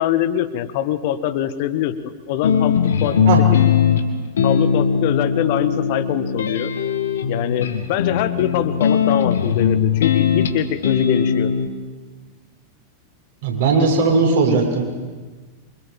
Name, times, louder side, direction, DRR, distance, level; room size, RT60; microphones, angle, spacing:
voice 1, 0.0-3.2 4.4-6.7 7.3-11.5, left 11 dB, 50° left, 11 dB, 1.7 m, -23 dB
sound 1, 2.4-11.7, left 7 dB, 65° left, 2.5 m, -19 dB
voice 2, 13.4-14.8, right 4 dB, 55° right, 2 dB, 6.6 m, -17 dB
27.5 x 25.5 x 7.6 m, 1.4 s
figure-of-eight pair, 90°, 0 cm